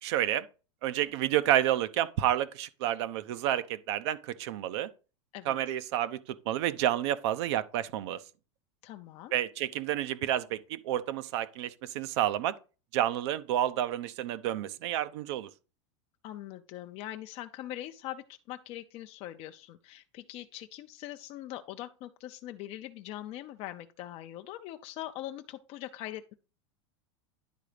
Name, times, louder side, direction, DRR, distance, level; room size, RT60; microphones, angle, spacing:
voice 1, 0.0-0.5 0.8-4.9 5.5-8.2 9.3-12.6 12.9-15.5, right 12 dB, 65° right, 0.7 m, -30 dB
voice 2, 5.3-5.7 8.8-9.3 16.2-26.3, left 14 dB, 40° left, 0.5 m, -42 dB
10.5 x 3.9 x 5.0 m
supercardioid pair, 145°, 15 cm